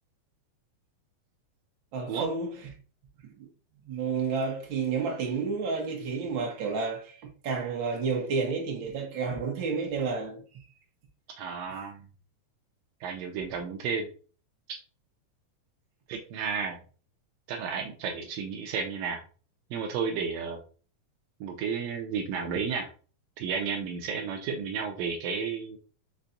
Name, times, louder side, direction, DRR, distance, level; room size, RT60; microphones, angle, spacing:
voice 1, 1.9-2.7 3.2-3.5 3.8-10.7, right 4 dB, 55° right, 1.4 m, -31 dB
voice 2, 11.4-12.0 13.0-14.1 16.1-16.8 17.5-19.2 19.7-20.6 21.4-22.9 23.4-25.8, right 6 dB, 90° right, 1.5 m, -32 dB
5.5 x 3.4 x 2.6 m
omnidirectional pair, 3.7 m